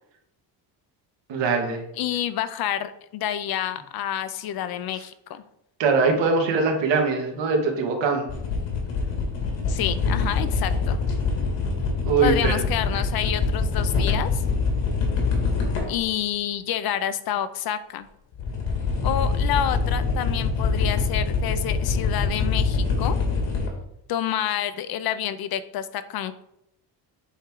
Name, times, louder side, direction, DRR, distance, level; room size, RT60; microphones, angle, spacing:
voice 1, 1.3-1.8 5.8-8.3 12.0-12.5 12.9-13.0, right 4 dB, 80° right, 2 dB, 1.7 m, -22 dB
voice 2, 2.0-5.4 9.7-11.0 12.2-14.4 15.9-18.1 19.0-23.2 24.1-26.4, left 10 dB, 55° left, 13 dB, 0.5 m, -28 dB
sound 1, 8.3-16.1 18.4-23.7, left 4 dB, 80° left, 2.0 m, -24 dB
8.0 x 3.6 x 4.6 m, 0.79 s
cardioid pair, 160°, 44 cm